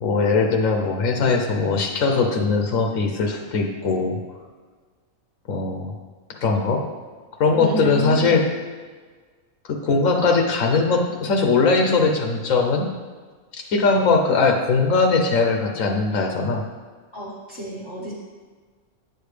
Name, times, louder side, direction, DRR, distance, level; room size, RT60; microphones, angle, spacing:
voice 1, 0.0-4.2 5.5-5.9 6.4-6.9 7.4-8.5 9.6-12.9 13.5-16.6, left 4 dB, 90° left, 2 dB, 1.2 m, -20 dB
voice 2, 7.6-8.4 17.1-18.1, equal, 20° left, -5 dB, 1.4 m, -29 dB
9.3 x 6.8 x 3.3 m, 1.5 s
omnidirectional pair, 1.3 m